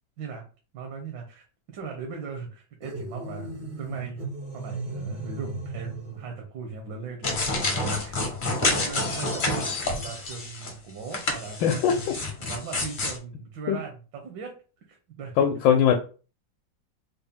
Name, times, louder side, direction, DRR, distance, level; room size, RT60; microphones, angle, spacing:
voice 1, 0.7-1.4 1.7-3.5 3.8-4.3 4.5-8.3 8.6-12.0 12.4-14.5 14.9-15.4, right 5 dB, 75° right, 2 dB, 1.5 m, -38 dB
sound 1, 2.8-6.3, right 2 dB, 50° right, 0.5 m, -36 dB
sound 2, 7.2-10.7 11.1-13.2, left 2 dB, 45° left, 0.6 m, -28 dB
voice 2, 11.6-12.0 13.7-13.8 15.4-15.9, left 8 dB, 80° left, 4 dB, 1.3 m, -20 dB
4.2 x 2.1 x 3.5 m, 0.36 s
omnidirectional pair, 2.1 m